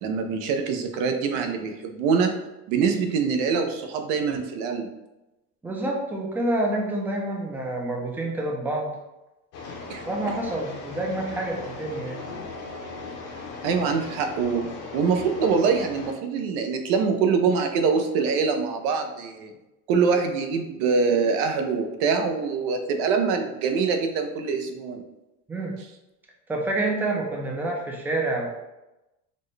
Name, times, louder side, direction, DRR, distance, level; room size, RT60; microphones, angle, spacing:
voice 1, 0.0-2.3 2.7-4.9 9.9-10.0 13.6-14.6 14.9-19.5 19.9-25.0, right 5 dB, 75° right, 5 dB, 0.6 m, -24 dB
voice 2, 5.6-8.9 10.1-12.2 25.5-25.8 26.5-28.6, right 2 dB, 5° right, -1 dB, 0.4 m, -28 dB
sound 1, 9.5-16.1, left 3 dB, 50° left, 0.7 m, -38 dB
4.2 x 2.1 x 3.2 m, 0.97 s
cardioid pair, 165°, 31 cm